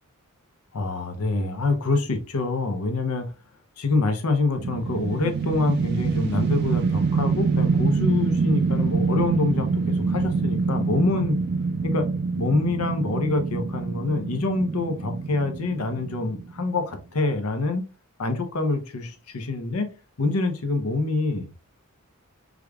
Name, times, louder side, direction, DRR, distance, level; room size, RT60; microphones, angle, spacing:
voice 1, 0.7-3.3 3.8-11.4 11.8-12.1 12.4-17.9 18.2-19.9 20.2-21.5, left 3 dB, 90° left, 0.7 m, -26 dB
sound 1, 4.6-16.8, right 4 dB, 50° right, 0.3 m, -25 dB
4.8 x 2.4 x 2.3 m
head